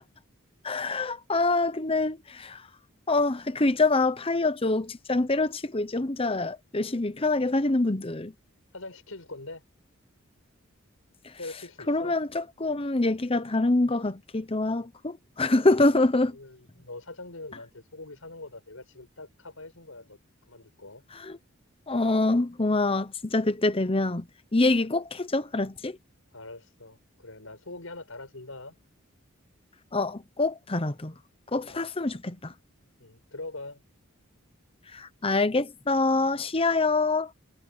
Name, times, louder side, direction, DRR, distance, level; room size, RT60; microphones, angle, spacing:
voice 1, 0.6-2.6 3.1-8.3 11.9-16.4 21.2-21.4 21.9-24.3 24.5-26.0 29.9-31.1 31.5-32.5 34.9-37.3, left 2 dB, 25° left, 0.9 m, -25 dB
voice 2, 8.7-9.6 11.4-12.2 16.3-20.2 20.5-21.0 26.3-28.8 31.6-31.9 33.0-33.8, left 2 dB, 80° left, 5.5 m, -43 dB
head